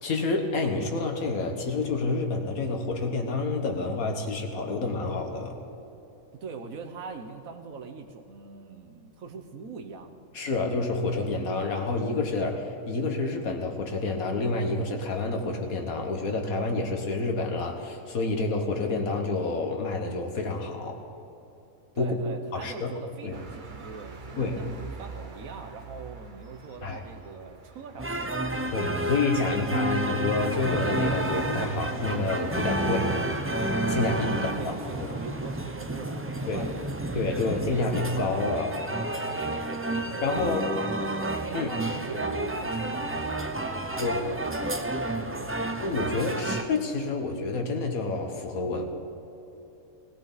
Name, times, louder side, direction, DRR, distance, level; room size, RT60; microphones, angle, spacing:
voice 1, 0.0-5.6 10.3-21.0 22.0-22.1 22.5-22.9 23.2-23.4 24.4-24.6 26.8-27.0 28.7-33.1 33.9-34.8 35.1-35.2 36.5-36.6 37.1-38.8 40.2-40.7 41.5-41.7 44.0-44.3 45.8-48.8, left 3 dB, 75° left, 4 dB, 1.9 m, -28 dB
voice 2, 6.3-10.4 21.9-29.1 29.4-29.8 34.3-36.9 37.4-37.6 39.5-40.0 40.4-41.0 41.5-44.8 45.4-45.6, right 4 dB, 70° right, 5 dB, 1.4 m, -42 dB
sound 1, 23.3-36.9, right 4 dB, 40° right, 1.1 m, -46 dB
sound 2, 28.0-46.6, right 1 dB, 20° right, 0.4 m, -30 dB
20.0 x 16.5 x 4.1 m, 3.0 s
omnidirectional pair, 1.5 m